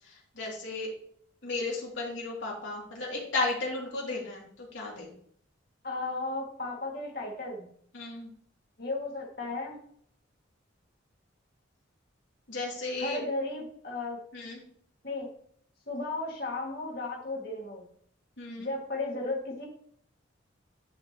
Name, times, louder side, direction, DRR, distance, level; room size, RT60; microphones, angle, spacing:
voice 1, 0.0-0.9 1.4-5.1 7.9-8.3 12.5-13.2 14.3-14.6 18.4-18.7, left 3 dB, 80° left, -3 dB, 2.7 m, -34 dB
voice 2, 5.8-7.7 8.8-9.8 13.0-14.2 15.0-15.3 15.9-17.8 18.6-19.7, left 2 dB, 50° left, -1 dB, 2.0 m, -34 dB
10.5 x 5.1 x 3.0 m, 0.62 s
head